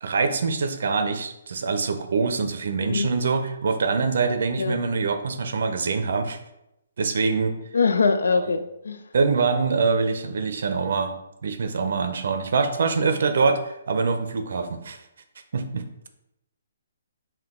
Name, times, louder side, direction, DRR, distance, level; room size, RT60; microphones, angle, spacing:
voice 1, 0.0-6.4 7.0-7.5 8.4-8.5 9.1-11.2 11.4-15.0 15.5-15.8, right 4 dB, 65° right, 8 dB, 0.5 m, -24 dB
voice 2, 7.7-9.0, left 4 dB, 90° left, 8 dB, 0.5 m, -23 dB
5.9 x 2.3 x 3.6 m, 0.86 s
hypercardioid pair, 160°, 0 cm